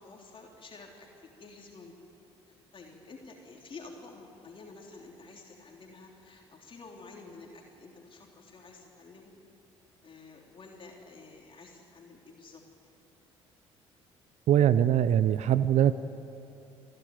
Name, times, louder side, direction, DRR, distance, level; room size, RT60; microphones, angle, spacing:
voice 1, 0.0-2.0 2.5-9.3 10.0-12.6, left 3 dB, 35° left, 0 dB, 3.4 m, -50 dB
voice 2, 14.5-15.9, right 10 dB, 55° right, 14 dB, 0.7 m, -22 dB
28.5 x 12.0 x 9.3 m, 2.9 s
figure-of-eight pair, 50°, 14 cm